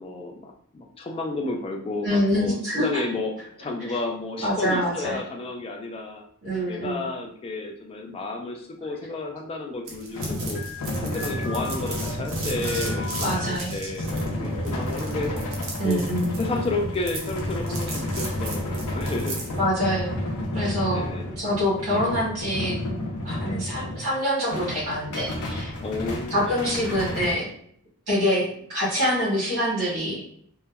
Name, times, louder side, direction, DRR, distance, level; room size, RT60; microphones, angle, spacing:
voice 1, 0.0-6.2 6.7-10.6 11.0-15.3 15.8-16.1 16.4-19.4 20.9-21.3 25.8-26.3 26.6-26.8, left 2 dB, 25° left, 2 dB, 0.3 m, -32 dB
voice 2, 2.0-3.0 4.4-5.2 6.4-7.1 13.2-13.8 15.8-16.3 19.5-20.2 20.5-21.0 21.4-22.8 23.2-25.7 26.3-27.5 28.1-30.2, equal, 80° right, -7 dB, 1.3 m, -25 dB
sound 1, 9.9-24.1 24.5-27.3, left 1 dB, 85° left, 0.6 m, -31 dB
sound 2, 9.9-19.6, right 3 dB, 65° right, 0.7 m, -37 dB
sound 3, 10.5-13.5 14.0-15.6, left 2 dB, 15° right, 1.3 m, -39 dB
2.8 x 2.1 x 2.3 m, 0.64 s
head